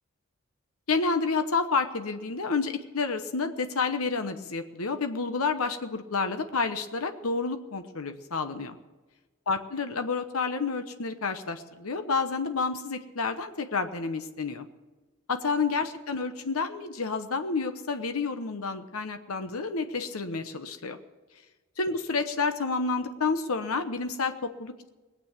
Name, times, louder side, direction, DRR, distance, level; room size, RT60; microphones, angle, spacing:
voice 1, 0.9-8.8 9.5-14.7 15.3-21.0 21.8-24.9, left 4 dB, 80° left, 8 dB, 1.0 m, -29 dB
19.5 x 8.8 x 7.3 m, 1.3 s
head